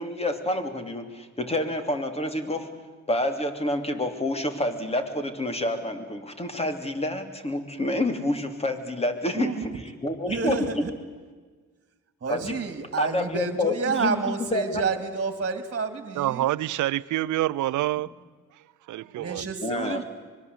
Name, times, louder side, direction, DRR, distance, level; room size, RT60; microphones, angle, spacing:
voice 1, 0.0-2.7 3.1-9.7 10.0-10.6 12.3-12.5 13.0-14.8 19.6-20.0, left 1 dB, 20° left, 3.2 m, -28 dB
voice 2, 9.3-9.8 10.3-10.9 12.2-16.4 19.2-20.0, right 5 dB, 40° right, 2.6 m, -29 dB
voice 3, 16.2-18.1 18.9-19.4, right 15 dB, 75° right, 0.8 m, -26 dB
25.0 x 21.5 x 8.2 m
cardioid pair, 90°, 30 cm